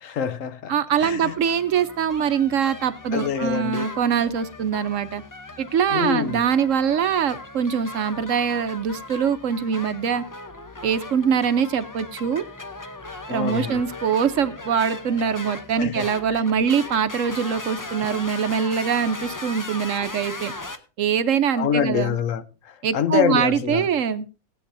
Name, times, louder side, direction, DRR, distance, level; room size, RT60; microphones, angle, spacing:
voice 1, 0.0-0.7 1.0-1.3 3.1-3.9 5.9-6.5 13.3-13.8 15.8-16.4 21.6-23.9, left 7 dB, 70° left, 1.1 m, -26 dB
voice 2, 0.7-5.2 5.6-10.2 10.8-12.4 13.3-20.5 21.0-22.2 22.8-24.3, right 7 dB, 65° right, 1.1 m, -23 dB
sound 1, 0.9-20.8, left 2 dB, 20° left, 0.6 m, -38 dB
18.0 x 9.5 x 2.6 m
omnidirectional pair, 1.5 m